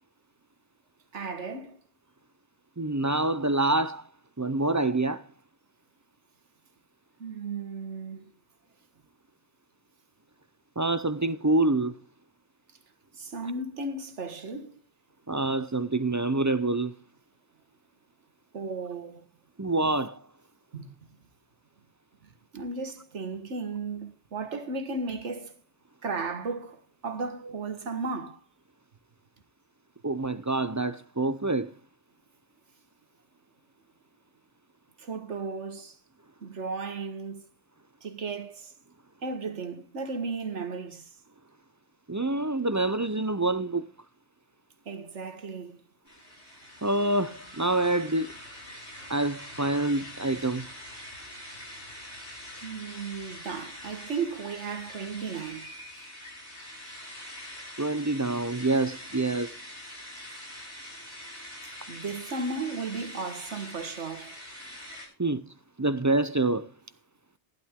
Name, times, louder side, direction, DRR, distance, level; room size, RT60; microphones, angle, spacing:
voice 1, 1.1-1.8 7.2-8.3 13.1-14.8 18.5-19.3 20.7-21.0 22.2-25.5 26.0-28.4 35.0-36.0 36.4-37.5 38.0-38.7 39.2-41.1 44.9-45.8 52.6-55.7 61.6-64.4, right 4 dB, 85° right, 1.8 m, -35 dB
voice 2, 2.8-4.1 4.4-5.2 10.8-12.0 15.3-16.9 19.6-20.2 30.0-31.7 42.1-43.9 46.8-48.3 49.1-50.7 57.8-59.5 65.2-65.4 65.8-66.7, right 2 dB, 25° right, 0.4 m, -26 dB
sound 1, 46.1-65.1, left 1 dB, 65° left, 7.0 m, -44 dB
15.0 x 11.5 x 3.6 m
omnidirectional pair, 1.2 m